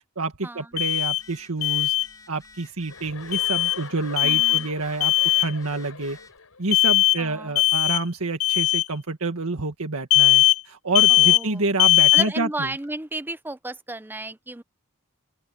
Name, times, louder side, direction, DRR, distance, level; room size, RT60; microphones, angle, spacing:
voice 1, 0.2-2.0 2.3-5.1 5.4-6.2 6.6-12.7, right 3 dB, 80° right, 1.8 m, -28 dB
Telephone, 0.7-6.4, left 3 dB, 15° left, 3.7 m, -51 dB
Alarm, 0.8-1.2 1.6-2.1 3.3-3.8 4.2-4.6 5.0-5.5 6.7-7.2 7.6-8.0 8.4-8.8 10.1-10.6 10.9-11.4 11.8-12.3, left 17 dB, 70° left, 0.6 m, -19 dB
Chuckle chortle, 2.9-6.6, left 4 dB, 90° left, 4.1 m, -42 dB
voice 2, 4.2-4.7 7.2-7.6 11.1-11.6 12.1-14.6, right 2 dB, 10° right, 0.6 m, -33 dB
open air
head